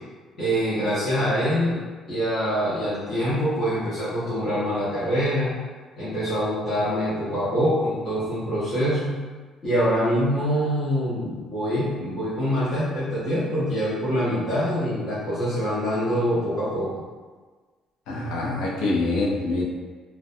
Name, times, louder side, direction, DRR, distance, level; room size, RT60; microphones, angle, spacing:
voice 1, 0.4-1.8 2.1-5.5 6.0-9.2 9.6-16.9, equal, 35° left, -14 dB, 0.7 m, -24 dB
voice 2, 18.1-19.6, left 2 dB, 85° left, -3 dB, 0.5 m, -25 dB
2.3 x 2.1 x 2.6 m, 1.4 s
cardioid pair, 170°, 0 cm